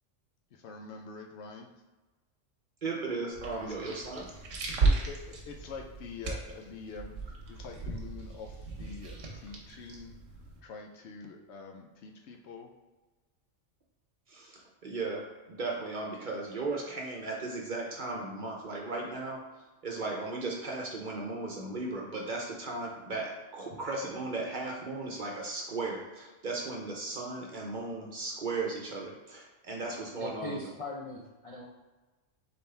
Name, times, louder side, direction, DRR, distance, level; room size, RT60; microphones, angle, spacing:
voice 1, 0.5-1.7 3.6-4.3 4.8-10.2 10.6-12.7, left 4 dB, 65° left, 3 dB, 0.8 m, -46 dB
voice 2, 2.8-4.3 14.3-19.4 19.8-30.7, right 3 dB, 45° right, -1 dB, 0.8 m, -36 dB
sound 1, 3.3-10.6, right 3 dB, 90° right, 1.2 m, -35 dB
voice 3, 30.2-31.7, left 2 dB, 45° left, -4 dB, 0.4 m, -40 dB
4.2 x 3.7 x 3.3 m, 1.2 s
omnidirectional pair, 1.3 m